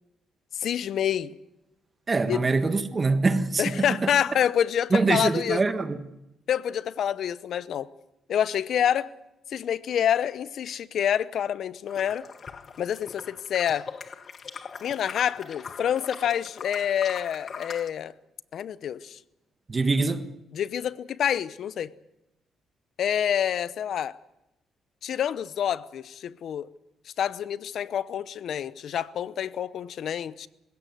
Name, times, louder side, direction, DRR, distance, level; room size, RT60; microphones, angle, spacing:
voice 1, 0.5-1.4 2.3-2.4 3.6-5.6 6.5-7.9 8.3-9.1 9.5-12.2 12.8-13.9 14.8-18.1 18.5-19.2 20.5-21.9 23.0-24.2 25.0-26.7 27.2-30.5, left 9 dB, 65° left, 0.8 m, -27 dB
voice 2, 2.1-4.1 4.9-6.0 19.7-20.3, right 3 dB, 30° right, 1.6 m, -24 dB
sound 1, 11.9-17.9, left 6 dB, 45° left, 1.1 m, -41 dB
20.5 x 16.5 x 9.4 m
cardioid pair, 90°, 0 cm